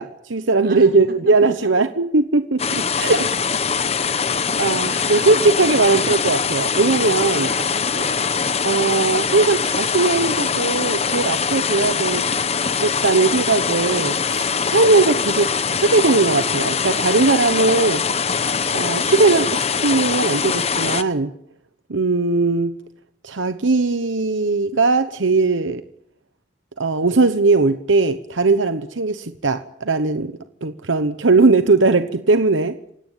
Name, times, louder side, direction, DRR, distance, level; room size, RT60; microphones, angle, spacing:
voice 1, 0.0-3.3 4.6-7.5 8.6-12.3 12.8-18.0 18.7-21.3 21.9-22.7 23.2-25.8 26.8-30.3 30.6-32.8, right 3 dB, 90° right, 10 dB, 1.0 m, -19 dB
sound 1, 2.6-21.0, left 6 dB, 35° left, 1.0 m, -22 dB
voice 2, 3.6-4.0 4.3-5.6 7.3-8.3, right 2 dB, 50° right, 4 dB, 6.6 m, -37 dB
28.0 x 17.5 x 9.1 m, 0.77 s
head